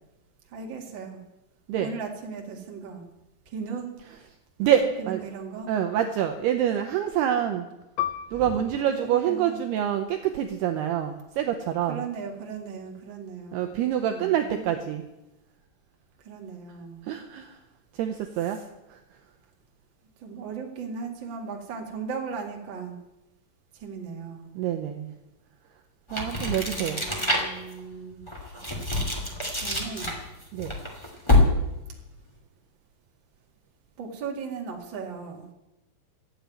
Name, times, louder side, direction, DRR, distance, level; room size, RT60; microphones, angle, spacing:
voice 1, 0.5-1.2 1.8-3.0 3.4-3.9 5.0-5.7 8.3-8.6 8.9-9.6 11.9-13.7 14.1-14.8 16.2-17.0 18.5-18.6 20.2-23.0 23.7-24.5 26.5-28.3 29.6-30.2 34.0-35.5, right 5 dB, 60° right, 1 dB, 1.2 m, -37 dB
voice 2, 4.6-5.2 5.7-7.7 8.3-12.0 13.5-15.0 17.1-17.6 17.9-18.6 18.9-19.0 24.6-25.1 26.1-27.0 30.5-30.7, right 10 dB, 85° right, 5 dB, 2.3 m, -26 dB
Piano, 8.0-13.0 13.4-13.5 14.3-14.7, left 12 dB, 85° left, 3.3 m, -38 dB
sound 1, 26.1-27.7 28.2-31.8, left 2 dB, 45° left, 0.3 m, -25 dB
13.5 x 8.7 x 9.2 m, 0.95 s
omnidirectional pair, 5.7 m